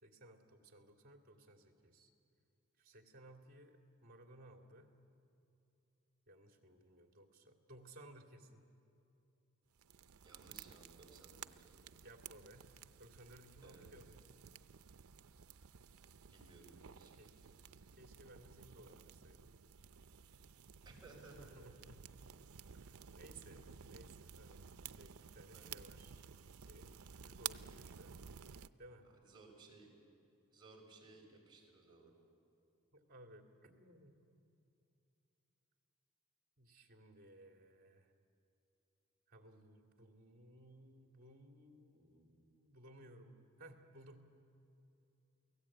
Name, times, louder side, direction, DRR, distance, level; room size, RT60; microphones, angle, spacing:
voice 1, 0.0-2.1 2.8-4.9 6.3-8.6 12.0-12.7 13.0-14.2 17.2-17.4 17.9-19.5 21.4-22.0 22.7-26.2 26.7-28.2 28.8-29.1 32.9-34.3 36.6-38.1 39.3-44.3, right 1 dB, 45° right, 3 dB, 2.5 m, -59 dB
sound 1, 9.8-28.7, right 8 dB, 85° right, 0.6 m, -54 dB
voice 2, 10.2-11.8 13.6-13.9 16.3-17.7 20.2-20.5 20.8-21.5 25.5-25.8 29.0-29.9 30.5-32.1, right 3 dB, 20° right, -2 dB, 5.2 m, -60 dB
29.0 x 18.0 x 8.6 m, 2.7 s
head